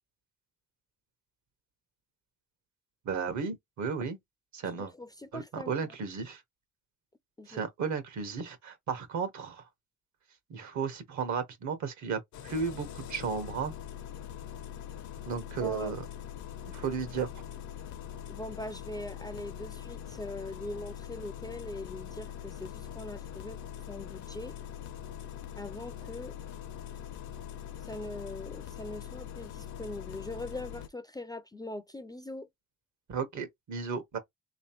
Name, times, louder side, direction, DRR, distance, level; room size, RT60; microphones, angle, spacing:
voice 1, 3.0-4.2 4.5-4.9 5.3-6.4 7.5-9.6 10.5-13.7 15.3-16.0 16.7-17.3 33.1-34.2, right 5 dB, 70° right, 1.2 m, -34 dB
voice 2, 4.6-5.7 7.4-7.6 15.6-15.9 18.3-23.6 23.9-24.5 25.6-26.3 27.8-32.5, left 1 dB, 15° left, 0.4 m, -41 dB
Engine starting, 12.3-30.9, left 10 dB, 75° left, 0.8 m, -43 dB
3.3 x 3.1 x 2.9 m
cardioid pair, 90°, 30 cm